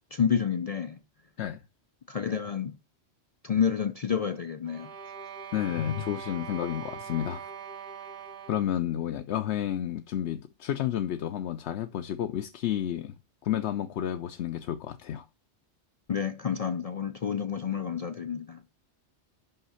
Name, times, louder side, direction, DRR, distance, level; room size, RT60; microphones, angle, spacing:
voice 1, 0.1-1.0 2.1-2.8 3.4-4.9 16.1-18.6, left 7 dB, 55° left, 0.4 m, -29 dB
sound 1, 4.6-8.8, right 6 dB, 60° right, 1.4 m, -42 dB
voice 2, 5.5-7.5 8.5-13.1 13.4-15.2, left 11 dB, 75° left, 0.9 m, -31 dB
5.8 x 5.6 x 5.6 m
omnidirectional pair, 1.2 m